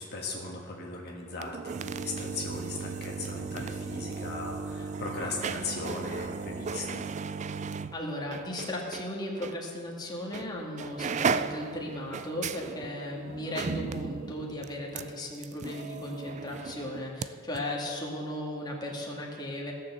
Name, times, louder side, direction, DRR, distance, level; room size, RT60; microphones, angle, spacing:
voice 1, 0.0-7.0, left 3 dB, 50° left, -1 dB, 1.5 m, -38 dB
sound 1, 1.3-9.1 9.4-9.6 10.3-10.5 10.8-17.3 17.5-17.6, right 5 dB, 35° right, 0.3 m, -35 dB
voice 2, 7.9-19.7, left 1 dB, 20° left, -2 dB, 1.9 m, -36 dB
17.0 x 6.7 x 7.1 m, 2.3 s
head